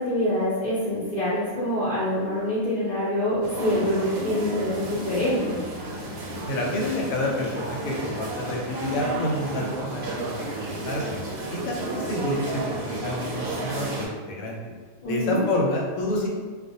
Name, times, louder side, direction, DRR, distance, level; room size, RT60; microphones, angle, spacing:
voice 1, 0.0-5.6 15.0-15.4, left 1 dB, 55° left, -9 dB, 0.5 m, -25 dB
sound 1, 3.4-14.1, right 1 dB, 85° right, 1.0 m, -32 dB
voice 2, 6.4-11.2 11.5-14.6 15.1-16.3, left 1 dB, 85° left, -1 dB, 1.0 m, -29 dB
2.4 x 2.1 x 2.7 m, 1.5 s
omnidirectional pair, 1.4 m